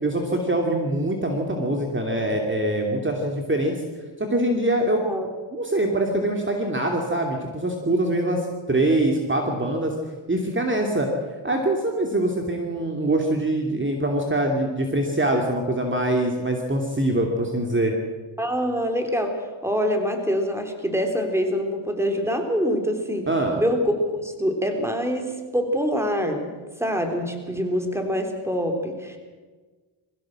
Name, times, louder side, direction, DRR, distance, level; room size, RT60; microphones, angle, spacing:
voice 1, 0.0-3.7 4.2-5.0 5.5-8.4 8.7-9.9 10.3-11.1 11.4-17.9 23.3-23.6, right 1 dB, 25° right, 2 dB, 2.7 m, -23 dB
voice 2, 18.4-23.3 23.6-26.5 26.8-29.2, equal, 5° right, 4 dB, 3.5 m, -25 dB
22.5 x 15.5 x 7.7 m, 1.4 s
cardioid pair, 85°, 49 cm